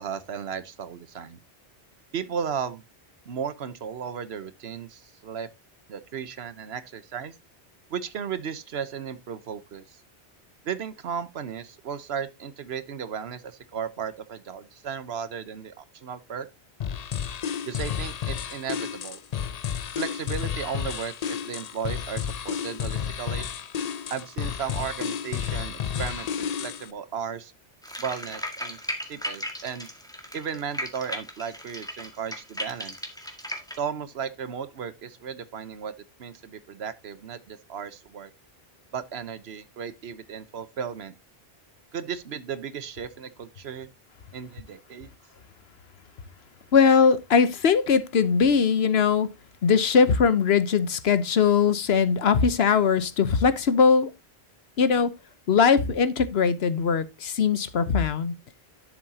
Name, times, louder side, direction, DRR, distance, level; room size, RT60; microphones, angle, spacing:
voice 1, 0.0-1.4 2.1-2.8 3.2-5.5 5.9-7.4 7.9-10.0 10.6-16.5 17.6-19.2 20.0-23.5 24.1-27.5 28.0-28.8 29.1-29.9 30.3-33.0 33.8-35.9 36.2-38.3 38.9-41.1 41.9-43.9 44.3-45.1, right 7 dB, 75° right, 1.1 m, -35 dB
sound 1, 16.8-26.9, left 8 dB, 50° left, 0.5 m, -31 dB
sound 2, 27.8-33.8, equal, 5° left, 1.7 m, -36 dB
voice 2, 46.7-49.3 49.6-54.1 54.8-55.1 55.5-58.3, left 6 dB, 75° left, 1.1 m, -21 dB
11.0 x 7.3 x 2.8 m
omnidirectional pair, 1.1 m